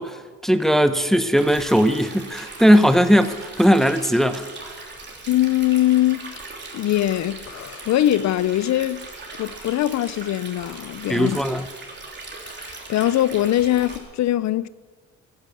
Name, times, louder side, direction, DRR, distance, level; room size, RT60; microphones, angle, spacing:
voice 1, 0.0-4.5 11.1-11.6, equal, ahead, 0.8 m, -18 dB
Stream, 1.4-14.0, right 3 dB, 35° right, 3.3 m, -39 dB
voice 2, 5.3-6.3 6.7-9.1 9.4-11.4 12.5-14.7, left 13 dB, 65° left, 0.5 m, -22 dB
15.0 x 10.5 x 8.4 m
cardioid pair, 90°, 30 cm